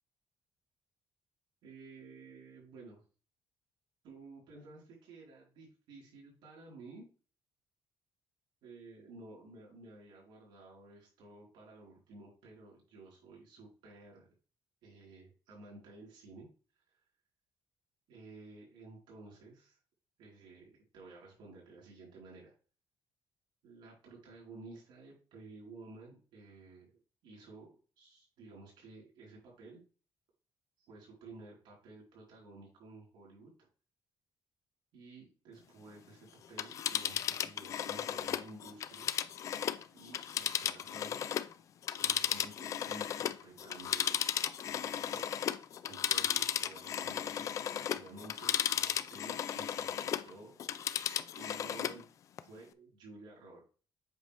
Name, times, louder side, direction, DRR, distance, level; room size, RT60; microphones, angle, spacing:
voice 1, 1.6-3.0 4.0-7.1 8.6-14.3 14.8-16.5 16.9-17.0 18.1-19.8 20.2-22.5 23.6-27.0 27.2-29.8 30.9-33.5 34.9-39.1 39.9-41.2 42.0-44.2 44.6-45.3 45.9-50.6 51.3-52.0 52.4-53.6, right 3 dB, 85° right, -3 dB, 4.1 m, -53 dB
Telephone, 36.4-41.5 41.8-50.3 50.6-52.0 52.4-52.5, left 9 dB, 40° left, 0.4 m, -35 dB
8.0 x 5.4 x 3.4 m, 0.37 s
cardioid pair, 180°, 8 cm